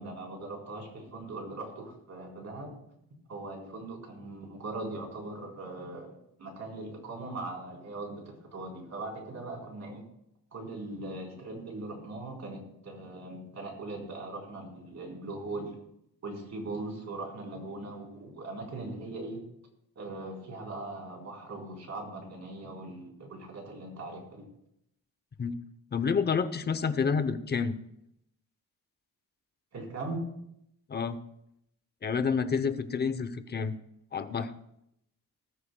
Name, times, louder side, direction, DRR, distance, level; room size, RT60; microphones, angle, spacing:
voice 1, 0.0-2.7 3.3-10.0 10.5-15.7 16.2-19.4 20.0-24.5 29.7-30.2, right 2 dB, 50° right, -1 dB, 4.2 m, -40 dB
voice 2, 25.9-27.8 30.9-31.2 32.0-33.7 34.1-34.5, left 5 dB, 30° left, 12 dB, 0.7 m, -29 dB
19.5 x 13.5 x 2.3 m, 0.79 s
cardioid pair, 145°, 35 cm